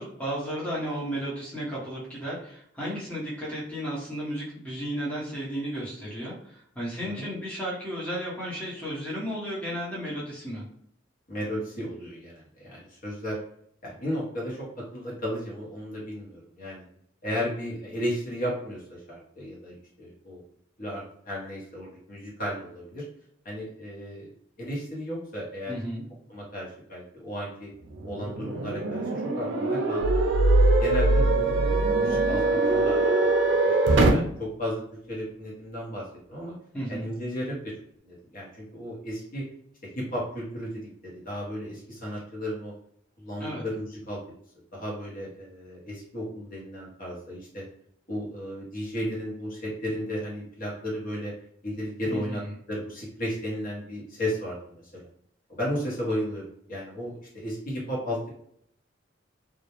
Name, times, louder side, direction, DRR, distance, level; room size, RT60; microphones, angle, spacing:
voice 1, 0.0-10.6 25.7-26.0 36.7-37.1 43.4-43.6 52.1-52.5, equal, 5° left, -7 dB, 0.7 m, -33 dB
voice 2, 11.3-13.4 13.8-16.8 17.2-20.4 20.8-23.0 23.4-24.3 24.6-25.7 26.3-27.7 28.0-30.2 30.8-31.4 31.9-33.0 33.4-34.8 35.1-36.0 36.3-36.5 36.9-37.7 38.0-39.4 39.9-42.7 43.2-44.2 44.7-47.6 48.1-51.3 51.6-52.4 52.7-55.0 55.5-58.3, equal, 45° left, -4 dB, 0.8 m, -34 dB
sound 1, 28.0-34.1, right 3 dB, 65° right, 0.4 m, -24 dB
sound 2, 30.0-32.9, right 1 dB, 75° left, 0.3 m, -23 dB
2.2 x 2.0 x 2.9 m, 0.67 s
head